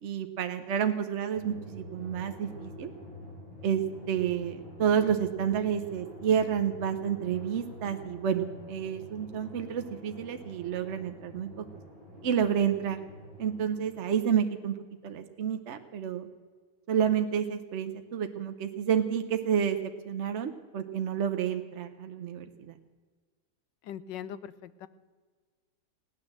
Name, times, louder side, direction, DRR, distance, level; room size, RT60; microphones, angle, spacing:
voice 1, 0.0-2.9 3.6-11.6 12.2-13.0 13.4-14.8 15.0-16.3 16.9-22.7, right 8 dB, 55° right, 7 dB, 0.8 m, -30 dB
Drum, 1.3-14.4, equal, 55° left, 7.2 m, -47 dB
voice 2, 23.8-24.9, left 9 dB, 90° left, 15 dB, 1.3 m, -41 dB
17.0 x 9.8 x 7.5 m, 1.5 s
omnidirectional pair, 1.9 m